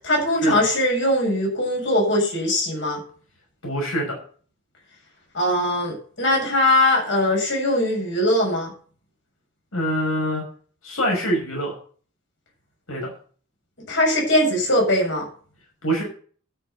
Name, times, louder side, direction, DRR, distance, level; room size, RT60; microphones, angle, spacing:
voice 1, 0.0-3.0 5.3-8.7 13.9-15.3, left 1 dB, 60° left, -1 dB, 7.6 m, -21 dB
voice 2, 3.6-4.2 9.7-10.4 10.8-11.8 12.9-13.1 15.8-16.0, equal, 85° left, -1 dB, 6.1 m, -24 dB
12.5 x 7.1 x 6.9 m, 0.43 s
head